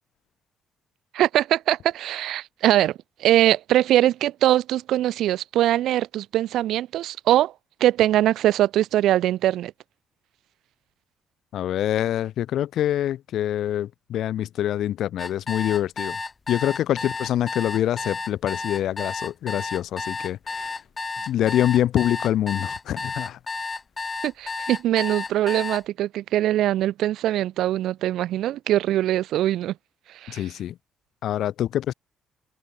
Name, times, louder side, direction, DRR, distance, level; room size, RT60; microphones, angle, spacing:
voice 1, 1.1-7.5 7.8-9.7 24.2-29.7 30.2-30.4, right 13 dB, 80° right, 0.9 m, -22 dB
voice 2, 11.5-16.2 16.5-20.8 21.3-23.4 30.3-30.8 31.2-31.9, left 11 dB, 75° left, 0.5 m, -25 dB
sound 1, 15.2-25.8, left 4 dB, 30° left, 1.2 m, -32 dB
cardioid pair, 90°, 0 cm